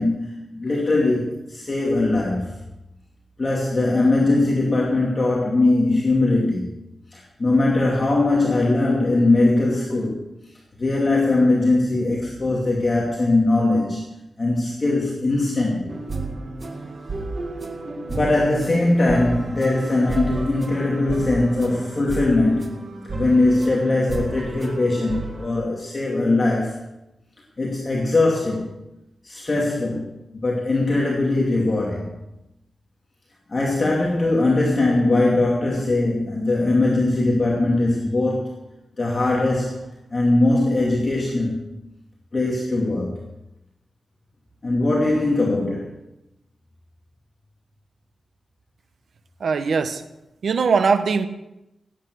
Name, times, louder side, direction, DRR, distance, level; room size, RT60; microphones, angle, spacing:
voice 1, 0.0-2.6 3.4-6.7 7.1-10.2 10.8-15.9 18.1-26.8 27.6-28.8 29.2-32.1 33.5-38.6 39.0-41.7 42.3-43.2 44.6-46.0, left 2 dB, 35° left, 2.5 m, -21 dB
sound 1, 15.9-25.5, right 2 dB, 40° right, 1.8 m, -32 dB
voice 2, 49.4-50.0 50.4-51.3, right 5 dB, 75° right, 1.0 m, -20 dB
18.0 x 9.1 x 6.2 m
wide cardioid pair, 120°, 0 cm